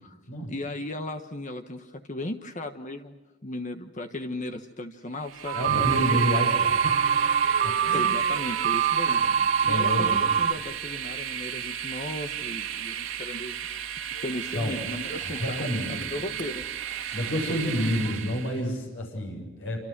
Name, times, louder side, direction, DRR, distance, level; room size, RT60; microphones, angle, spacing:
voice 1, 0.5-5.6 7.9-9.2 9.6-13.6 14.2-16.6 17.1-17.2, left 1 dB, 40° left, 7 dB, 1.4 m, -36 dB
Train, 5.2-18.6, right 9 dB, 80° right, 2.9 m, -34 dB
sound 1, 5.4-10.5, right 7 dB, 45° right, 1.6 m, -24 dB
voice 2, 5.5-6.9 7.6-8.0 9.0-10.3 14.5-14.8 15.2-16.0 16.3-16.4 17.1-19.8, equal, 70° left, 1 dB, 7.4 m, -29 dB
29.0 x 26.5 x 6.1 m, 1.2 s
head